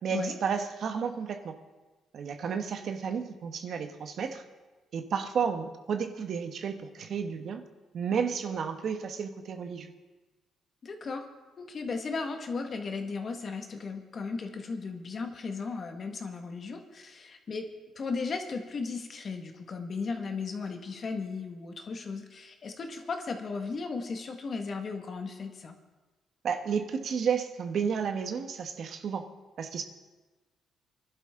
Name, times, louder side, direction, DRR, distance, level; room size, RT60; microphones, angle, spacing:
voice 1, 0.0-1.6 2.1-4.4 4.9-7.6 7.9-9.9 26.4-29.3 29.6-29.8, right 6 dB, 60° right, 6 dB, 1.3 m, -32 dB
voice 2, 10.8-11.2 11.6-17.7 17.9-25.8, left 4 dB, 45° left, 5 dB, 1.7 m, -36 dB
24.0 x 11.5 x 3.8 m, 1.2 s
cardioid pair, 110°, 0 cm